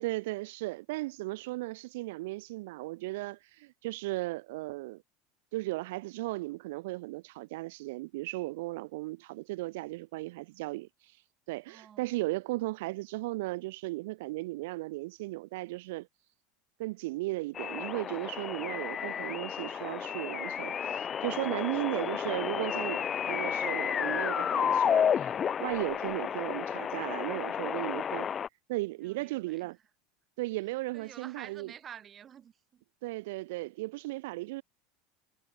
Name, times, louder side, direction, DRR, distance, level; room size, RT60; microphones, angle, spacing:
voice 1, 0.0-5.0 5.5-16.1 16.8-25.3 25.6-28.3 28.7-29.8 30.4-31.7 33.0-34.6, right 20 dB, 75° right, 1.0 m, -36 dB
voice 2, 11.7-12.1 18.6-19.4 26.0-26.5 29.0-29.8 30.5-30.6 30.9-32.8, right 9 dB, 25° right, 4.2 m, -51 dB
sound 1, 17.5-28.5, left 8 dB, 20° left, 0.5 m, -31 dB
supercardioid pair, 165°, 0 cm